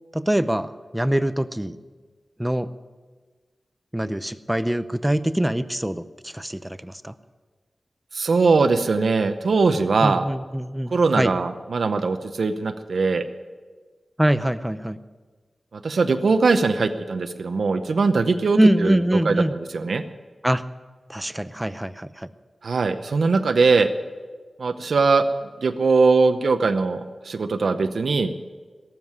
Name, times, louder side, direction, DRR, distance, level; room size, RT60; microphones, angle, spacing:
voice 1, 0.1-1.8 2.4-2.7 3.9-7.1 10.0-11.3 14.2-15.0 18.5-19.5 20.4-20.6 21.1-22.3, right 1 dB, 10° right, 13 dB, 0.6 m, -24 dB
voice 2, 8.1-10.3 10.9-13.2 15.8-20.0 22.6-23.9 24.6-25.2 25.6-28.3, right 4 dB, 80° right, 8 dB, 0.7 m, -21 dB
18.0 x 7.5 x 9.6 m, 1.4 s
wide cardioid pair, 75°, 0 cm